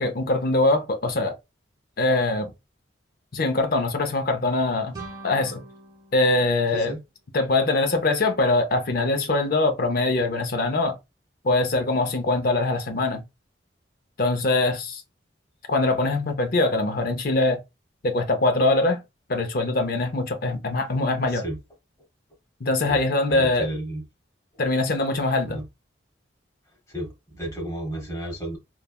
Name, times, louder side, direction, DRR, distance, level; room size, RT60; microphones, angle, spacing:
voice 1, 0.0-1.3 2.0-2.5 3.3-5.0 5.2-5.6 6.1-6.9 7.3-11.0 11.4-13.2 14.2-15.0 15.7-17.6 18.0-19.0 19.3-21.4 22.6-23.7 24.6-25.6, left 2 dB, 50° left, 0.6 m, -23 dB
sound 1, 4.9-7.7, right 3 dB, 20° right, 0.8 m, -44 dB
voice 2, 23.3-24.0 25.4-25.6 26.9-28.6, right 1 dB, 15° left, 1.1 m, -32 dB
3.2 x 2.2 x 2.2 m
head